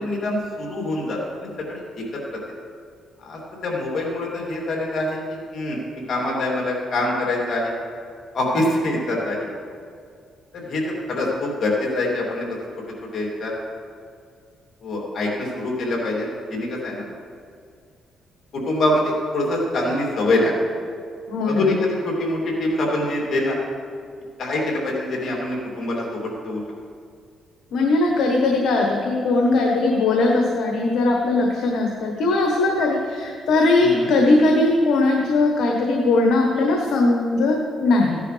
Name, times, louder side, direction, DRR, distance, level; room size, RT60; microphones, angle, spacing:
voice 1, 0.0-2.0 3.2-7.8 8.3-9.5 10.5-12.4 13.1-13.5 14.8-17.0 18.5-20.5 21.5-23.6 24.4-26.6 33.8-34.1, left 1 dB, 55° left, -3 dB, 3.0 m, -25 dB
voice 2, 21.3-21.6 27.7-38.2, left 2 dB, 75° left, 0 dB, 1.3 m, -19 dB
15.5 x 10.5 x 3.4 m, 2.3 s
cardioid pair, 90°, 0 cm